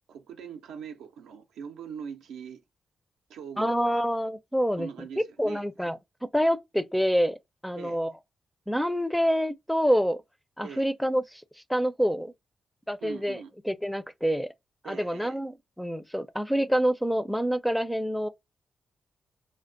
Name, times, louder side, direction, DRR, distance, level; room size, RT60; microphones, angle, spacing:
voice 1, 0.1-2.6 3.3-4.0 4.8-5.9 7.8-8.0 10.6-10.9 13.0-13.5 14.8-15.4, right 7 dB, 80° right, 0.4 m, -42 dB
voice 2, 3.6-4.9 5.4-6.0 6.3-7.4 7.6-8.1 8.7-10.2 10.6-11.4 11.7-12.3 12.9-13.4 13.7-14.5 14.8-18.3, equal, ahead, 0.4 m, -26 dB
2.3 x 2.2 x 2.4 m
hypercardioid pair, 40°, 0 cm